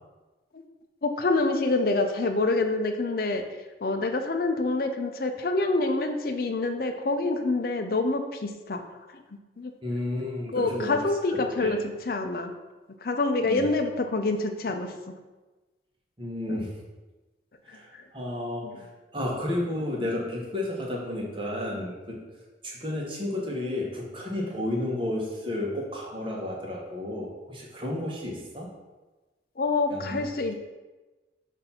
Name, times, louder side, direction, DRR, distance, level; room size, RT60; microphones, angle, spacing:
voice 1, 1.0-3.4 3.8-8.8 9.1-9.2 9.6-9.7 10.5-11.8 12.1-12.5 13.0-14.9 16.5-16.6 17.9-18.0 18.6-18.8 29.6-30.5, left 3 dB, 50° left, 6 dB, 0.5 m, -26 dB
voice 2, 9.8-11.0 11.3-11.8 13.4-13.6 16.2-16.7 17.6-28.7 29.9-30.2, left 1 dB, 30° right, -2 dB, 1.1 m, -32 dB
6.6 x 2.7 x 5.6 m, 1.2 s
head